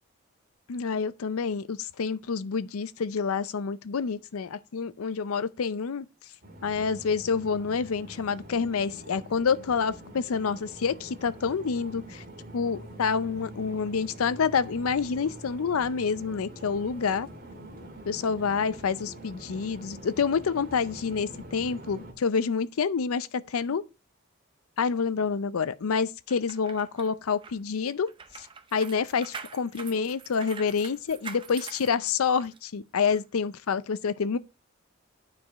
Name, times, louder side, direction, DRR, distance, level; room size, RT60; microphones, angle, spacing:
voice 1, 0.7-6.1 6.6-12.2 12.5-17.3 18.1-23.8 24.8-28.1 28.4-28.5 28.7-34.4, left 5 dB, 90° left, 0.5 m, -28 dB
sound 1, 6.4-22.1, right 1 dB, 40° right, 2.0 m, -45 dB
sound 2, 26.3-32.6 33.0-33.2, right 5 dB, 25° right, 0.5 m, -44 dB
9.7 x 4.8 x 4.0 m
head